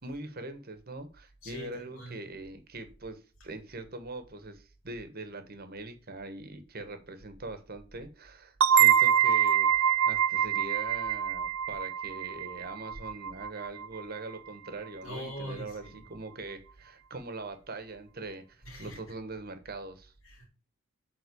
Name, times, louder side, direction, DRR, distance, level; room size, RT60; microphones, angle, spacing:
voice 1, 0.0-20.1, right 2 dB, 45° right, 1.4 m, -42 dB
voice 2, 1.4-2.2 11.7-11.8 15.0-16.0 18.6-19.1 20.2-20.5, equal, 70° left, 3.2 m, -42 dB
sound 1, 8.6-14.0, right 9 dB, 80° right, 0.5 m, -25 dB
8.3 x 3.9 x 6.9 m
head